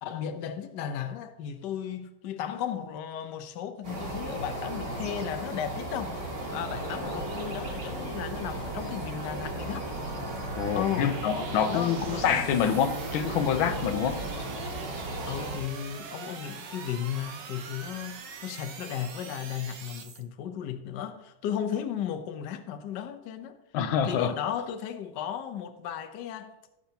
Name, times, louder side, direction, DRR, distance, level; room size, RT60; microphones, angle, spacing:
voice 1, 0.0-9.9 10.7-11.2 11.7-12.2 15.3-23.6 24.1-26.5, left 9 dB, 65° left, 1.4 m, -35 dB
sound 1, 3.8-15.6, right 1 dB, 50° right, 2.9 m, -36 dB
sound 2, 6.9-20.2, right 5 dB, 65° right, 1.7 m, -43 dB
voice 2, 10.5-14.2 23.7-24.3, left 8 dB, 90° left, 1.6 m, -26 dB
17.0 x 8.0 x 2.9 m
omnidirectional pair, 2.1 m